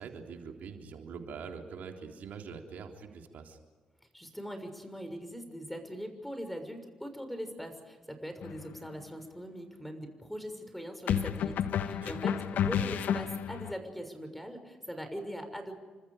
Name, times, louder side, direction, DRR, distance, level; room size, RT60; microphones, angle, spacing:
voice 1, 0.0-3.6 12.0-12.5, right 6 dB, 65° right, 3 dB, 3.7 m, -44 dB
voice 2, 4.1-15.8, equal, 5° left, 7 dB, 6.5 m, -41 dB
sound 1, 8.4-8.7 11.1-13.7, left 8 dB, 65° left, 1.2 m, -31 dB
29.5 x 25.5 x 5.1 m, 1.4 s
hypercardioid pair, 45°, 3 cm